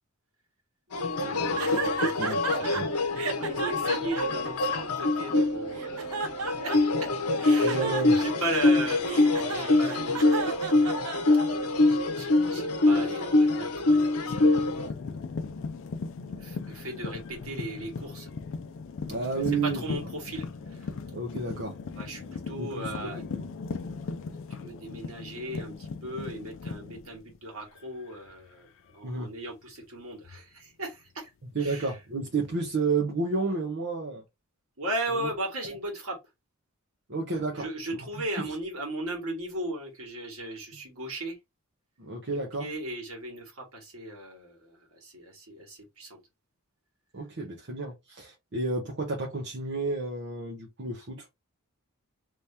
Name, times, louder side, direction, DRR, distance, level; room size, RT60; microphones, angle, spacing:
sound 1, 0.9-14.9, left 2 dB, 85° left, 0.7 m, -25 dB
voice 1, 1.2-2.9 3.4-6.2 6.6-7.1 7.4-10.8 11.5-15.2 16.3-18.3 19.4-20.9 21.9-23.3 23.6-31.3 31.6-32.1 34.8-36.2 37.5-41.4 42.3-46.2, right 1 dB, 70° right, 1.8 m, -37 dB
sound 2, 1.6-2.8 3.2-5.3 5.7-7.0 7.4-11.7, right 5 dB, 85° right, 0.6 m, -34 dB
voice 2, 2.2-2.9 7.6-8.2 19.1-19.8 21.1-21.7 22.6-22.9 23.3-23.4 29.0-29.3 31.5-34.2 35.2-35.3 37.1-37.7 42.0-42.6 47.1-51.2, right 3 dB, 50° right, 0.9 m, -31 dB
sound 3, 14.3-27.8 28.1-28.5 30.2-30.4 32.3-32.9, left 4 dB, 55° left, 0.4 m, -38 dB
3.1 x 2.8 x 3.4 m
head